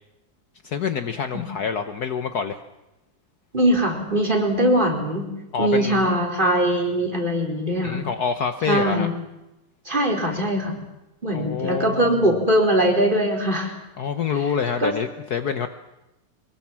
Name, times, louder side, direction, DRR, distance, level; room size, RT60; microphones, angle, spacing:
voice 1, 0.6-2.6 5.5-6.1 7.8-9.1 11.3-12.3 14.0-15.7, left 6 dB, 60° left, 9 dB, 1.4 m, -26 dB
voice 2, 3.5-5.3 5.6-8.1 8.7-9.1 9.8-10.8 11.2-13.7 14.3-14.4 14.8-14.9, right 1 dB, 25° right, 0 dB, 4.7 m, -21 dB
24.0 x 21.0 x 7.5 m, 0.94 s
omnidirectional pair, 2.1 m